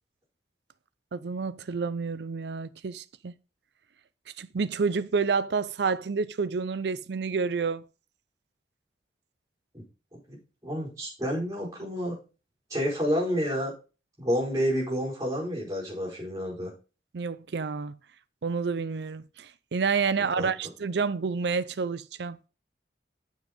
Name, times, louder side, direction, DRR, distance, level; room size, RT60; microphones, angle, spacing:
voice 1, 1.1-3.4 4.4-7.8 17.1-17.9 18.4-22.4, right 5 dB, 75° right, 0.5 m, -29 dB
voice 2, 10.6-12.1 12.7-13.7 14.2-16.7 20.4-20.5, equal, 20° right, 5.0 m, -29 dB
7.5 x 6.2 x 5.1 m
head